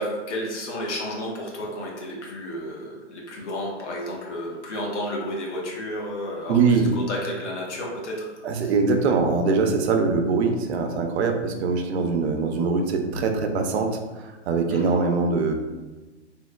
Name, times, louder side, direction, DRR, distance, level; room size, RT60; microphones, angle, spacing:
voice 1, 0.0-8.3 8.5-8.7 14.7-15.0, equal, 75° left, -2 dB, 0.9 m, -32 dB
voice 2, 6.5-6.9 8.4-13.9 14.2-15.5, right 4 dB, 65° right, 5 dB, 0.5 m, -22 dB
3.1 x 2.0 x 2.2 m, 1.2 s
hypercardioid pair, 135°, 36 cm